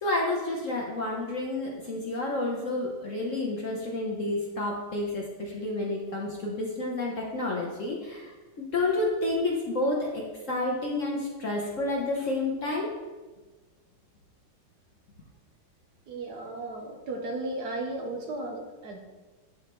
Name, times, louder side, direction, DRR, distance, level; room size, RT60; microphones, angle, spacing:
voice 1, 0.0-8.3 8.6-12.9, left 2 dB, 50° left, -2 dB, 1.0 m, -30 dB
voice 2, 16.1-19.0, right 2 dB, 65° right, 1 dB, 1.1 m, -35 dB
11.0 x 4.0 x 3.1 m, 1.3 s
omnidirectional pair, 2.2 m